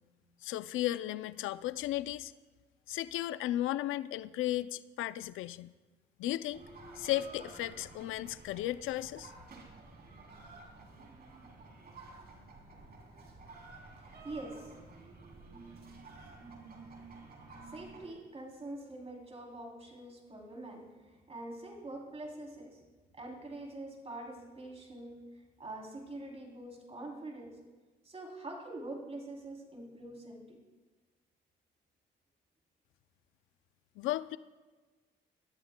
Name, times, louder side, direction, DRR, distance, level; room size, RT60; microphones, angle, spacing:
voice 1, 0.4-2.3 2.9-5.7 6.2-6.6 7.0-9.3 34.0-34.4, left 14 dB, 85° left, 15 dB, 0.4 m, -35 dB
sound 1, 6.5-18.1, right 3 dB, 50° right, 3.3 m, -52 dB
voice 2, 13.9-14.8 15.3-15.4 17.2-17.3 17.6-22.8 23.1-25.3 25.6-27.6 28.0-30.6, right 2 dB, 30° right, 0 dB, 3.2 m, -45 dB
22.0 x 13.5 x 2.2 m, 1.3 s
cardioid pair, 90°, 20 cm